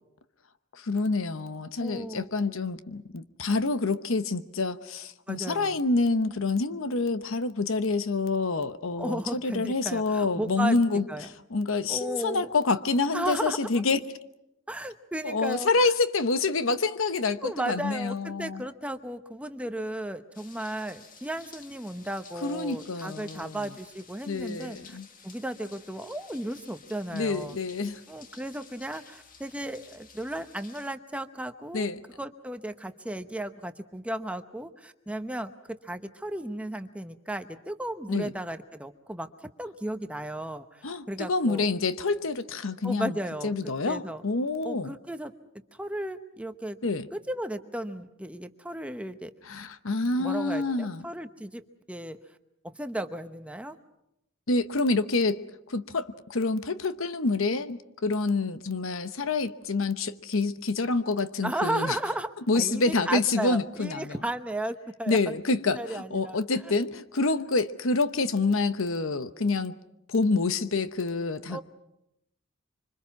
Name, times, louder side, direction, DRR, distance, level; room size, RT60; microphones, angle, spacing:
voice 1, 0.7-14.0 15.2-18.6 22.4-23.7 24.3-25.1 27.1-28.0 31.7-32.0 38.1-38.3 40.8-43.2 43.4-44.9 46.8-47.1 49.4-51.0 54.5-62.0 62.5-64.2 65.1-69.8 70.1-71.6, left 3 dB, 70° left, 12 dB, 0.9 m, -27 dB
voice 2, 1.8-2.3 5.3-5.8 9.0-10.8 11.1-11.3 11.9-12.5 13.1-13.7 14.7-15.7 17.4-25.0 25.2-27.6 28.1-31.9 32.2-39.3 39.6-41.7 42.8-43.5 43.9-44.2 44.6-45.3 45.7-46.8 47.1-49.3 50.2-52.2 52.6-53.8 61.4-65.3 65.7-66.4 66.6-66.7 71.5-71.6, right 1 dB, 5° right, 8 dB, 0.9 m, -35 dB
sound 1, 20.3-30.9, left 5 dB, 40° left, 1.7 m, -53 dB
25.5 x 25.0 x 5.9 m, 0.83 s
head